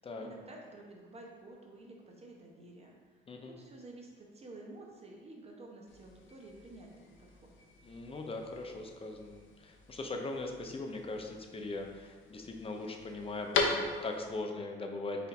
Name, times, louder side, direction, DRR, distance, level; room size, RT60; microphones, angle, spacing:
voice 1, 0.2-3.0 3.4-6.9 7.2-7.5, right 2 dB, 30° right, -1 dB, 0.8 m, -51 dB
sound 1, 5.9-14.4, left 4 dB, 80° left, 0.6 m, -40 dB
voice 2, 7.8-15.3, left 2 dB, 30° left, 3 dB, 0.6 m, -40 dB
4.2 x 2.6 x 4.1 m, 1.5 s
cardioid pair, 90°, 20 cm